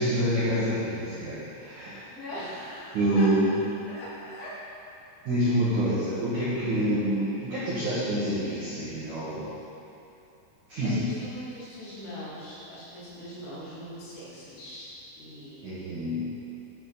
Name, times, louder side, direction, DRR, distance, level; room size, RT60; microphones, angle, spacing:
voice 1, 0.0-2.1 2.9-3.5 5.3-9.5 10.7-11.1 15.6-16.2, right 1 dB, 80° right, -10 dB, 1.7 m, -27 dB
voice 2, 2.1-3.6 3.9-4.5 9.3-9.5 10.8-15.8, equal, 80° left, -9 dB, 5.0 m, -41 dB
11.0 x 6.0 x 4.1 m, 2.7 s
omnidirectional pair, 5.8 m